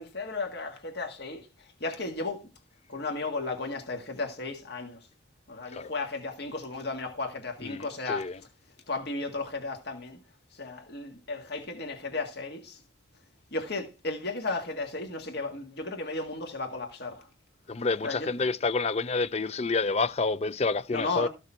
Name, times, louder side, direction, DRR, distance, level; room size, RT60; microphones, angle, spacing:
voice 1, 0.0-2.4 2.9-5.1 5.5-8.3 8.9-10.2 10.5-12.8 13.5-17.3 18.0-18.3 20.9-21.3, left 3 dB, 55° left, 1.8 m, -34 dB
voice 2, 7.6-8.4 17.7-21.3, left 3 dB, 35° left, 0.5 m, -29 dB
14.0 x 6.7 x 4.4 m
head